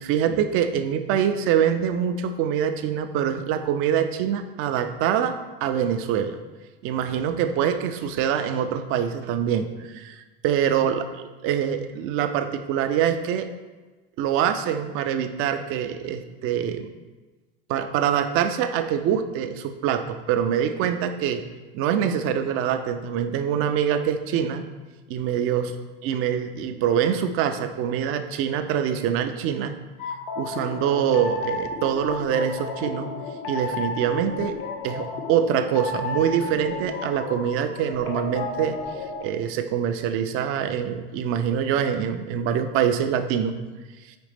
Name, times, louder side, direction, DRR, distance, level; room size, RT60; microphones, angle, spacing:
voice 1, 0.0-6.4 6.8-11.0 11.4-13.5 14.2-16.9 17.7-21.4 21.7-24.6 25.1-25.7 26.0-29.8 30.4-33.1 33.5-34.6 34.8-38.8 39.2-43.6, right 8 dB, 50° right, 9 dB, 0.4 m, -24 dB
sound 1, 30.0-39.2, left 3 dB, 85° left, 0.8 m, -33 dB
5.1 x 3.1 x 3.3 m, 1.2 s
supercardioid pair, 115°, 29 cm